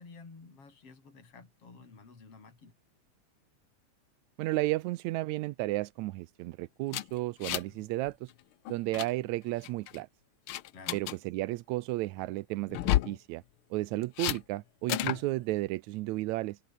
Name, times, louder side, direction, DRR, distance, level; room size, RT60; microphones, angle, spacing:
voice 1, 0.0-2.7 10.7-11.0, left 4 dB, 50° left, 5.7 m, -52 dB
voice 2, 4.4-8.3 8.7-10.1 10.9-13.4 13.7-16.6, right 18 dB, 85° right, 2.0 m, -33 dB
sound 1, 6.9-7.8 8.1-8.3 8.7-9.1 9.6-10.0 10.5-11.2 12.7-13.2 14.2-14.4 14.9-15.2, left 14 dB, 85° left, 1.1 m, -31 dB
omnidirectional pair, 3.3 m